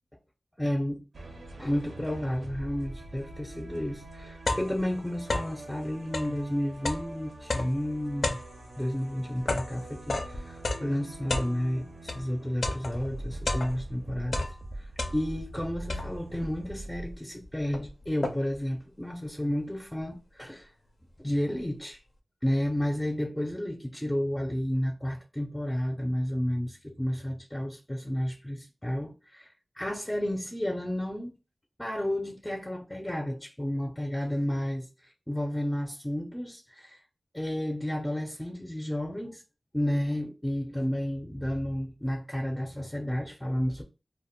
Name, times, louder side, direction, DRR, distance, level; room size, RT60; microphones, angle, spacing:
voice 1, 0.6-1.0 1.6-8.4 8.8-14.5 14.7-20.7 21.2-22.0 22.4-31.4 31.8-37.0 37.3-39.4 39.7-43.8, equal, 10° left, 0.4 m, -31 dB
sound 1, 1.1-17.2, right 2 dB, 75° right, 0.4 m, -44 dB
sound 2, 3.6-3.7 4.0-5.7 6.0-12.3 12.6-14.0 14.3-15.5 15.9-16.4 17.0-17.1 17.4-18.7, left 2 dB, 75° left, 0.4 m, -33 dB
2.0 x 2.0 x 3.4 m
wide cardioid pair, 55°, 0 cm